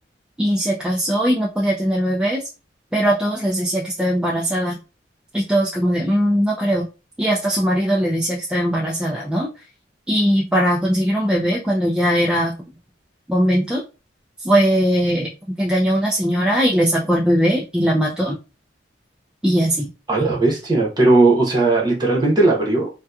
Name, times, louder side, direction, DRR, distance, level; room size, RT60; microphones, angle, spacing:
voice 1, 0.4-2.4 2.9-4.8 5.3-6.9 7.2-9.5 10.1-12.5 13.3-13.8 14.4-15.3 15.6-18.4 19.4-19.9, equal, 5° right, 0.3 m, -19 dB
voice 2, 20.1-22.9, right 2 dB, 25° right, 0.9 m, -17 dB
2.7 x 2.2 x 2.3 m
head